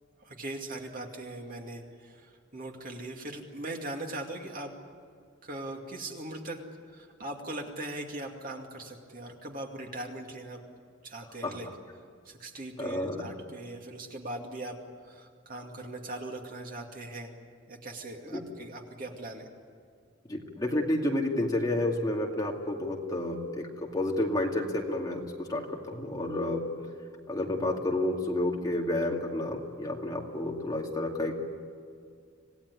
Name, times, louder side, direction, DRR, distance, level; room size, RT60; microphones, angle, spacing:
voice 1, 0.2-4.7 5.4-6.6 6.9-10.6 11.0-11.7 12.2-17.3 17.7-19.5, right 2 dB, 40° right, 2 dB, 2.4 m, -40 dB
voice 2, 12.8-13.2 18.3-18.4 20.3-26.6 27.3-31.4, left 1 dB, 20° left, 0 dB, 2.4 m, -30 dB
26.5 x 18.0 x 9.8 m, 2.2 s
head